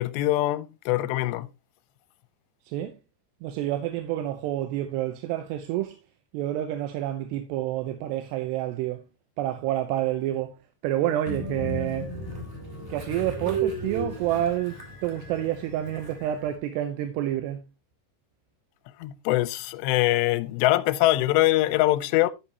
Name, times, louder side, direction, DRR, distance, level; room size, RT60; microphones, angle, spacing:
voice 1, 0.0-1.5 19.0-22.3, left 16 dB, 85° left, 2.8 m, -23 dB
voice 2, 2.7-3.0 3.4-6.0 6.3-9.0 9.4-10.6 10.8-12.1 12.9-17.6, right 12 dB, 85° right, 2.9 m, -28 dB
Train, 11.3-16.5, right 2 dB, 5° right, 2.4 m, -34 dB
10.0 x 8.7 x 2.8 m
omnidirectional pair, 4.9 m